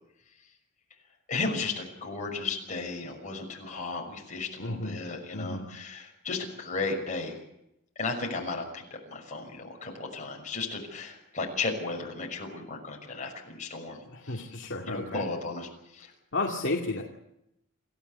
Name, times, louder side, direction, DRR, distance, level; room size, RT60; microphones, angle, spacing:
voice 1, 1.3-7.4 8.0-14.5 14.8-16.1, left 3 dB, 35° left, 0 dB, 6.2 m, -35 dB
voice 2, 4.6-5.0 5.3-5.7 14.0-15.2 16.3-17.0, left 2 dB, 55° left, -1 dB, 2.4 m, -32 dB
28.0 x 15.0 x 8.2 m, 0.83 s
head